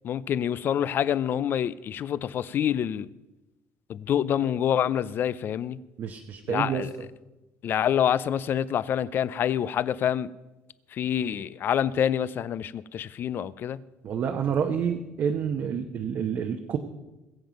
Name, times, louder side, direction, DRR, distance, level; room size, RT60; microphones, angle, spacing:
voice 1, 0.0-3.1 3.9-5.8 6.5-6.9 7.6-10.3 10.9-13.8, left 9 dB, 40° left, 0.5 m, -26 dB
voice 2, 6.0-6.8 14.0-16.8, right 7 dB, 45° right, 0.9 m, -28 dB
21.5 x 7.9 x 5.2 m
cardioid pair, 150°, 5 cm